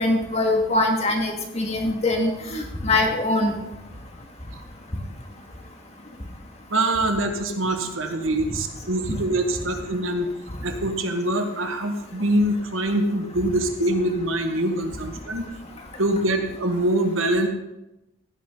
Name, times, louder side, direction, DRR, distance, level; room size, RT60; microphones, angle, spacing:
voice 1, 0.0-3.5, left 2 dB, 35° left, 2 dB, 2.0 m, -23 dB
voice 2, 6.7-10.3 10.6-15.5 16.0-17.5, right 1 dB, 90° right, 5 dB, 1.6 m, -24 dB
15.5 x 10.5 x 3.9 m, 0.94 s
head